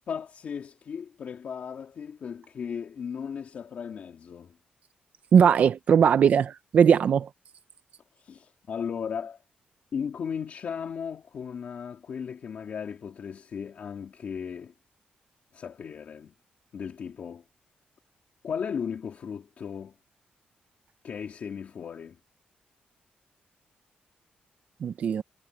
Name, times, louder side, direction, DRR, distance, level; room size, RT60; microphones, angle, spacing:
voice 1, 0.1-4.5 8.2-9.4 9.9-14.7 15.5-16.3 16.7-17.4 18.4-19.9 21.0-22.2, left 7 dB, 55° left, 2.8 m, -36 dB
voice 2, 5.3-7.3 24.8-25.2, right 7 dB, 55° right, 0.5 m, -20 dB
wide cardioid pair, 175°, 3 cm